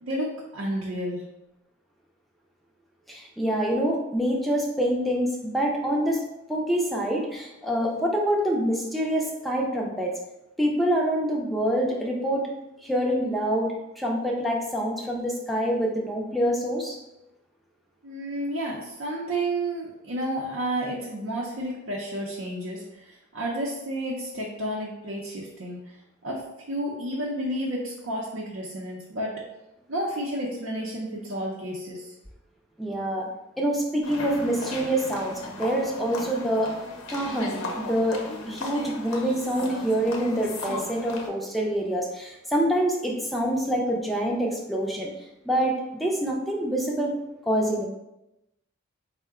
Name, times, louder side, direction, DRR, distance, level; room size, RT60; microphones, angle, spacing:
voice 1, 0.0-1.2 18.0-26.0 26.2-26.4 26.7-29.3 29.9-32.1, right 1 dB, 75° right, -4 dB, 0.6 m, -31 dB
voice 2, 3.1-6.2 6.5-10.1 10.6-12.5 12.8-13.7 14.0-17.0 32.8-33.3 33.6-36.7 37.1-38.2 38.4-45.1 45.4-47.1 47.5-47.9, equal, ahead, -2 dB, 0.4 m, -26 dB
sound 1, 34.0-41.3, left 2 dB, 85° left, 0.7 m, -36 dB
4.5 x 2.1 x 3.6 m, 0.93 s
head